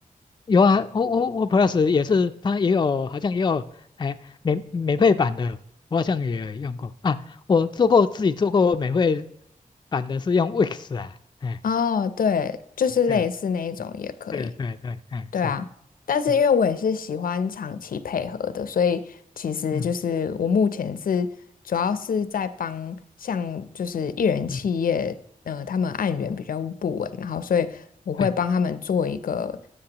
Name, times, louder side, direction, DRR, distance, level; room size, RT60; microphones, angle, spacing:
voice 1, 0.5-3.6 4.0-4.2 4.4-5.6 5.9-7.2 7.5-9.2 9.9-11.1 11.4-11.6 13.1-13.2 14.3-15.5 19.7-19.9 24.5-24.6 28.2-28.3, left 5 dB, 30° left, 9 dB, 0.4 m, -22 dB
voice 2, 11.6-14.5 15.3-15.7 16.1-21.3 21.6-25.2 25.5-29.6, left 6 dB, 80° left, 14 dB, 0.6 m, -25 dB
13.0 x 6.5 x 2.9 m, 0.71 s
wide cardioid pair, 135°, 14 cm